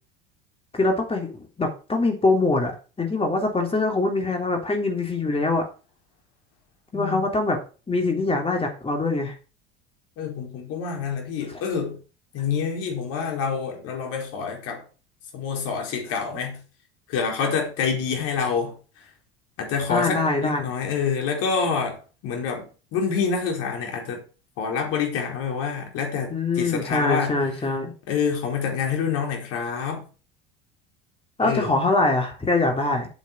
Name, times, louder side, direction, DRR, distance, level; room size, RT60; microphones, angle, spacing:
voice 1, 0.7-5.7 6.9-7.6 7.9-9.3 11.5-11.6 19.9-20.7 26.3-27.9 31.4-33.1, left 2 dB, 20° left, 3.5 m, -23 dB
voice 2, 6.9-7.2 10.2-12.0 12.3-14.8 15.3-16.6 17.1-18.7 19.6-22.0 22.2-24.2 24.6-27.3 28.1-30.0 31.4-31.8, left 6 dB, 55° left, 4.8 m, -27 dB
8.5 x 7.5 x 4.9 m
hypercardioid pair, 75°, 29 cm